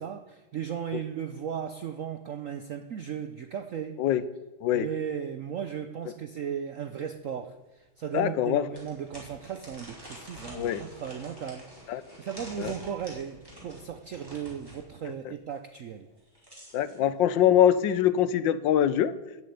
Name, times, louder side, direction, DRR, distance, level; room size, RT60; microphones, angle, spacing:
voice 1, 0.0-4.0 4.7-16.1, right 8 dB, 70° right, 9 dB, 0.7 m, -36 dB
sound 1, 7.8-7.9 8.7-14.8 16.1-17.0, equal, 10° right, 5.1 m, -47 dB
voice 2, 8.1-8.7 10.5-10.8 11.9-12.0 12.6-12.7 16.7-19.1, left 10 dB, 75° left, 15 dB, 1.3 m, -23 dB
14.5 x 7.5 x 9.5 m, 1.1 s
omnidirectional pair, 2.2 m